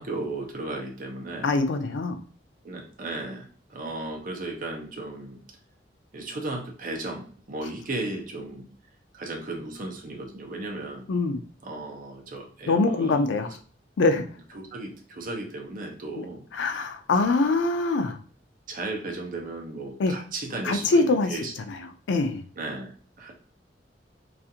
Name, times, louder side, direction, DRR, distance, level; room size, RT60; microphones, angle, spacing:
voice 1, 0.0-1.5 2.6-5.4 6.1-8.7 9.1-11.1 11.6-13.2 14.5-16.4 18.7-21.5 22.6-22.9 23.2-23.3, right 2 dB, 50° right, 2 dB, 0.6 m, -35 dB
voice 2, 1.4-2.2 11.1-11.4 12.7-13.6 14.0-14.3 16.2-16.3 16.5-18.2 20.0-20.1 20.6-21.4 21.7-22.4, left 3 dB, 75° left, 7 dB, 0.4 m, -24 dB
2.4 x 2.4 x 2.7 m, 0.42 s
head